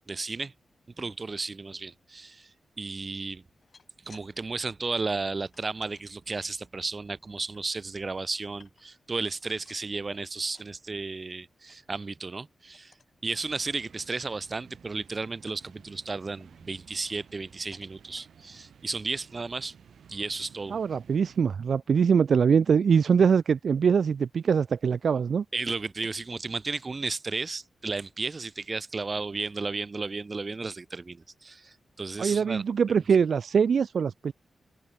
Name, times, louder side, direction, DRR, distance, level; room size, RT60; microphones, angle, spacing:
voice 1, 0.1-0.5 1.0-2.5 2.8-3.4 4.0-12.9 13.2-19.7 20.1-20.8 25.5-32.6, right 3 dB, 25° right, 1.4 m, -34 dB
sound 1, 3.4-4.3 4.6-6.1 6.6-7.6 8.0-9.1 9.4-10.8 11.1-11.4 11.7-11.8 12.2-12.4 12.7-13.1 13.6-13.7 14.0-14.8 15.4-15.9 16.4-17.5 17.7-18.3 18.9-19.0 19.3-19.4, left 5 dB, 35° left, 6.7 m, -60 dB
sound 2, 13.3-21.4, right 8 dB, 75° right, 2.6 m, -55 dB
voice 2, 20.7-25.4 32.2-34.3, right 6 dB, 55° right, 0.5 m, -23 dB
wide cardioid pair, 180°, 0 cm